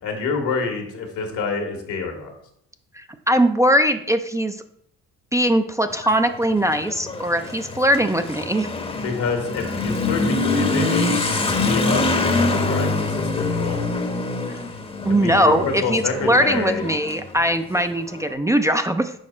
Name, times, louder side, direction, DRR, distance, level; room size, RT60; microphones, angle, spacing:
voice 1, 0.0-2.3 9.0-13.8 15.1-16.8, left 4 dB, 80° left, 4 dB, 1.6 m, -27 dB
voice 2, 2.9-4.6 5.3-8.7 15.0-19.1, right 1 dB, 10° right, 7 dB, 0.4 m, -20 dB
Motorcycle / Accelerating revving vroom, 5.9-18.2, left 3 dB, 20° left, 0.8 m, -25 dB
6.4 x 4.9 x 4.3 m, 0.71 s
cardioid pair, 90°, 30 cm